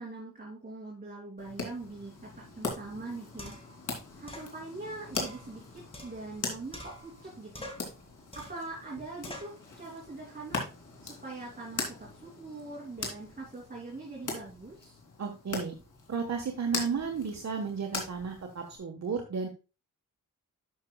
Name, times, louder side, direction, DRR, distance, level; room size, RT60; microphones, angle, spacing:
voice 1, 0.0-3.6 4.2-7.7 8.3-10.6 11.0-15.0, right 3 dB, 25° right, -4 dB, 2.9 m, -43 dB
sound 1, 1.4-18.8, left 3 dB, 65° left, 3.0 m, -41 dB
sound 2, 3.4-3.8 4.3-4.5 5.1-6.4 6.7-7.3 7.5-7.9 8.3-8.7 9.2-9.6, left 1 dB, 15° left, 2.5 m, -46 dB
voice 2, 15.2-15.8 16.1-19.5, right 5 dB, 55° right, 3 dB, 1.3 m, -33 dB
12.5 x 6.0 x 2.3 m, 0.32 s
wide cardioid pair, 110°, 33 cm